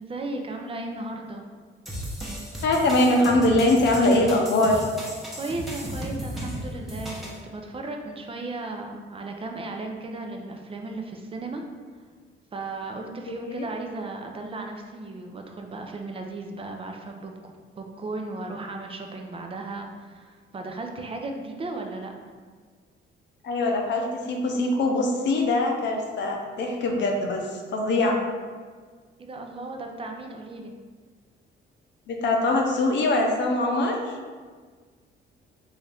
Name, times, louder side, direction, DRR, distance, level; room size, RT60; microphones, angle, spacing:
voice 1, 0.0-1.4 5.4-11.7 12.5-22.1 29.2-30.7, right 2 dB, 30° right, 3 dB, 0.5 m, -35 dB
sound 1, 1.9-7.4, equal, ahead, 0.9 m, -35 dB
voice 2, 2.6-4.8 13.3-13.7 23.4-28.2 32.1-34.2, left 2 dB, 65° left, 1 dB, 0.7 m, -23 dB
3.6 x 2.7 x 3.4 m, 1.5 s
cardioid pair, 90°, 20 cm